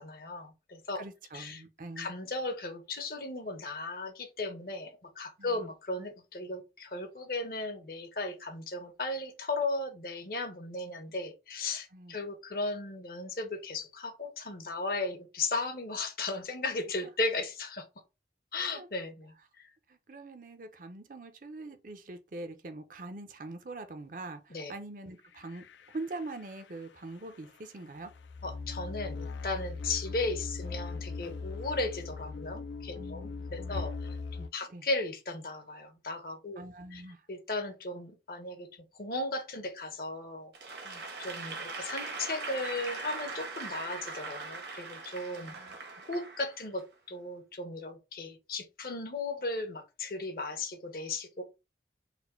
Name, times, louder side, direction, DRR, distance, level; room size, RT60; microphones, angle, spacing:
voice 1, 0.0-1.0 1.3-1.6 2.0-17.9 18.5-19.3 19.6-19.7 24.5-24.7 28.4-36.6 36.9-37.0 37.3-40.5 41.2-45.5 46.1-51.4, left 2 dB, 55° left, 0.9 m, -36 dB
voice 2, 0.9-2.1 5.4-5.7 11.9-12.2 18.6-18.9 19.9-28.1 33.0-33.8 34.7-34.8 36.6-37.2 40.8-41.0 45.2-45.8, right 2 dB, 50° right, 0.6 m, -44 dB
sound 1, 25.3-34.5, left 4 dB, 90° left, 0.4 m, -40 dB
Applause / Crowd, 40.5-46.8, right 3 dB, 80° right, 1.3 m, -40 dB
4.2 x 2.2 x 4.3 m
head